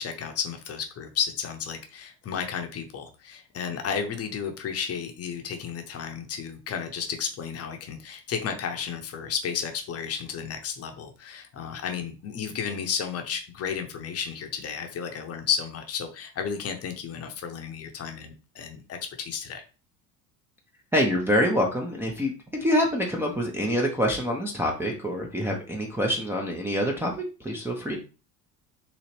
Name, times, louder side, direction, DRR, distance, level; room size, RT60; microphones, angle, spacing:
voice 1, 0.0-19.6, left 7 dB, 30° left, 5 dB, 0.8 m, -33 dB
voice 2, 20.9-22.3 22.6-28.0, equal, 5° right, -1 dB, 0.5 m, -26 dB
4.0 x 2.8 x 3.1 m, 0.34 s
figure-of-eight pair, 65°, 48 cm